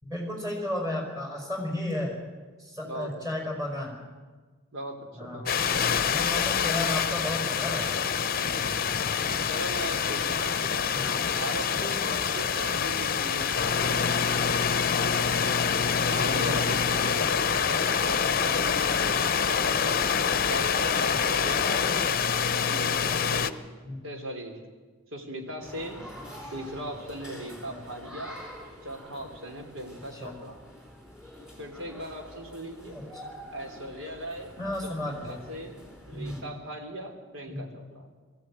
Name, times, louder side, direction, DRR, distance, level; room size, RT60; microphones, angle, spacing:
voice 1, 0.0-2.2 2.6-4.0 5.2-7.9 10.9-11.2 16.1-16.7 23.8-24.0 27.7-27.8 30.1-30.3 32.9-33.0 34.6-35.4 36.1-36.4 37.5-37.7, left 1 dB, 20° right, 0 dB, 5.4 m, -34 dB
voice 2, 2.8-3.5 4.7-5.5 8.3-8.9 9.5-14.2 16.0-20.0 20.5-22.2 22.6-23.7 24.0-24.6 25.1-26.0 26.5-28.4 28.8-30.6 31.6-33.0 33.5-34.5 34.8-38.1, right 1 dB, 70° right, 3 dB, 3.5 m, -39 dB
sound 1, 5.5-23.5, left 6 dB, 45° left, 0.7 m, -26 dB
sound 2, 25.6-36.4, equal, 5° right, 4.2 m, -46 dB
20.5 x 15.5 x 8.9 m, 1.4 s
head